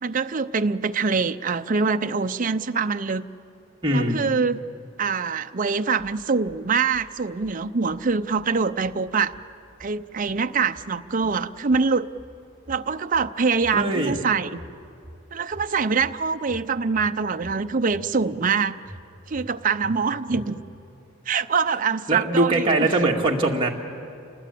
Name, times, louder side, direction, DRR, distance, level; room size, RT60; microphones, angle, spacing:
voice 1, 0.0-3.2 3.9-4.6 5.0-9.3 9.8-12.1 12.7-14.6 15.3-18.8 19.3-20.5 21.3-22.9, right 5 dB, 40° right, 9 dB, 0.6 m, -24 dB
voice 2, 3.8-4.2 13.7-14.1 20.3-20.4 22.1-23.7, right 2 dB, 25° right, -1 dB, 2.0 m, -22 dB
sound 1, 6.0-6.6 6.9-7.6 7.9-8.6 8.8-9.5 9.8-10.5 10.7-11.4 11.7-12.4 12.7-13.3 13.6-14.3 14.6-15.2 15.5-16.2 16.5-17.1 17.4-18.1 18.4-18.5 18.8-19.5 19.8-19.9 20.3-20.8, equal, 10° right, 3.0 m, -45 dB
28.0 x 20.0 x 8.4 m, 2.5 s
head